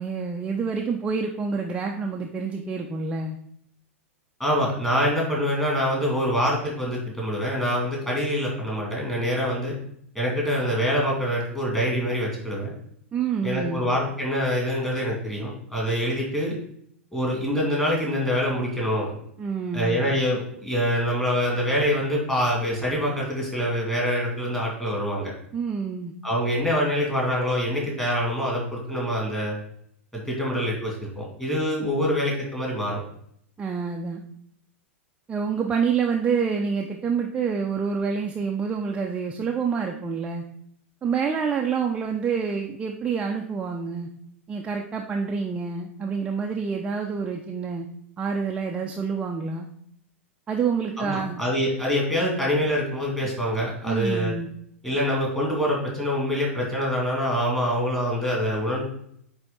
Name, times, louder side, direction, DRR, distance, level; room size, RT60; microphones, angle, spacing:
voice 1, 0.0-3.4 13.1-13.8 19.4-20.0 25.5-26.1 33.6-34.2 35.3-40.4 41.0-44.1 44.5-47.9 48.2-49.7 50.5-51.4 53.8-54.5, right 5 dB, 15° right, 1 dB, 0.6 m, -27 dB
voice 2, 4.4-9.7 10.1-12.7 13.4-16.6 17.1-19.1 19.7-25.3 26.2-29.5 30.1-33.0 51.0-54.3 54.8-58.8, equal, 10° left, -3 dB, 2.5 m, -25 dB
8.7 x 3.5 x 4.0 m, 0.68 s
figure-of-eight pair, 95°, 7 cm